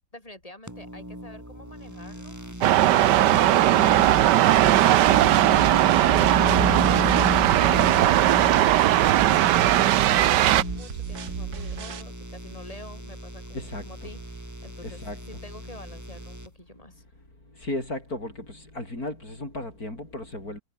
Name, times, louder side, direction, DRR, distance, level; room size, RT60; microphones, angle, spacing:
voice 1, 0.1-2.4 2.9-3.5 3.9-17.0, left 1 dB, 20° left, 8.2 m, -47 dB
sound 1, 0.7-16.5, equal, 10° right, 6.0 m, -34 dB
sound 2, 2.6-10.6, right 13 dB, 85° right, 1.4 m, -19 dB
sound 3, 4.0-12.0, right 8 dB, 65° right, 1.7 m, -36 dB
voice 2, 13.5-13.9 14.8-15.2 17.5-20.6, left 1 dB, 60° left, 8.6 m, -35 dB
omnidirectional pair, 1.8 m